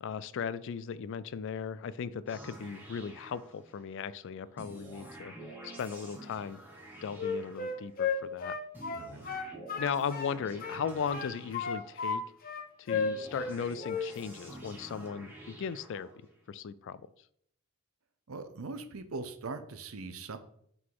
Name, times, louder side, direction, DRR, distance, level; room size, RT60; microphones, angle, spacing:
voice 1, 0.0-5.3 5.6-6.6 7.0-8.6 9.8-12.2 12.8-16.1 16.5-17.0, left 6 dB, 60° left, 17 dB, 0.3 m, -37 dB
sound 1, 2.3-4.0 4.6-8.1 8.7-12.3 12.9-16.4, right 1 dB, 10° right, 1.4 m, -49 dB
Wind instrument woodwind instrument, 7.1-10.3 10.6-12.2 12.4-13.6 13.8-14.1, left 5 dB, 45° left, 0.9 m, -33 dB
voice 2, 8.9-9.3 18.3-20.4, right 3 dB, 75° right, 9 dB, 0.7 m, -41 dB
5.8 x 3.8 x 4.7 m, 0.67 s
head